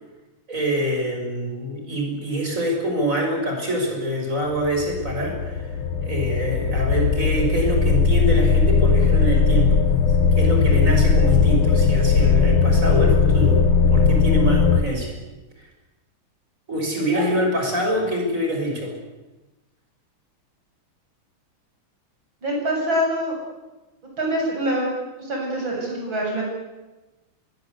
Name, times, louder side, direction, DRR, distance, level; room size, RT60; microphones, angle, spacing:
voice 1, 0.5-5.7 6.0-9.8 10.3-13.6 13.9-15.1 16.7-18.9, equal, 35° right, 2 dB, 6.5 m, -25 dB
sound 1, 4.6-14.8, left 5 dB, 75° left, 2.3 m, -18 dB
voice 2, 22.4-23.3 24.2-26.5, right 1 dB, 60° right, -1 dB, 8.4 m, -25 dB
24.0 x 20.5 x 8.3 m, 1.1 s
omnidirectional pair, 2.4 m